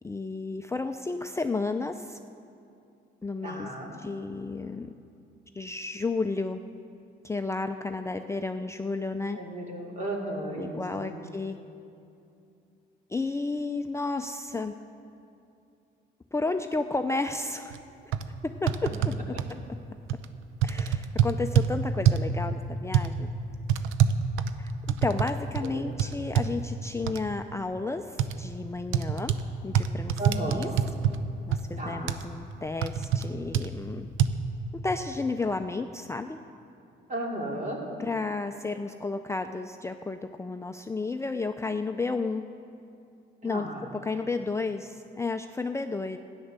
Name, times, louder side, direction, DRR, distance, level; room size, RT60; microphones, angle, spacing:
voice 1, 0.0-2.2 3.2-3.7 4.0-4.9 5.5-6.6 7.2-9.4 10.6-11.6 13.1-14.7 16.3-17.8 18.4-19.1 19.5-19.6 20.6-23.3 23.7-23.9 24.6-29.3 29.6-30.7 31.5-34.1 34.8-36.4 38.0-42.4 43.4-43.7 43.9-46.2, left 3 dB, 15° left, 6 dB, 0.5 m, -32 dB
voice 2, 3.4-4.0 9.3-11.2 25.6-26.0 30.2-30.8 31.8-32.2 37.1-37.8 43.4-43.9, right 1 dB, 40° right, -1 dB, 2.9 m, -35 dB
sound 1, 17.7-17.8 18.1-18.2 18.7-19.5 20.1-20.3 20.6-21.7 22.0-22.3 22.9-23.1 23.7-25.3 25.5-25.7 26.0-26.5 27.1-27.2 28.2-28.3 28.9-29.4 29.7-31.2 31.5-31.6 32.1-32.2 32.8-33.2 33.5-33.7 34.2-34.3, right 9 dB, 90° right, 0.6 m, -24 dB
13.5 x 9.9 x 6.7 m, 2.6 s
cardioid pair, 90°, 20 cm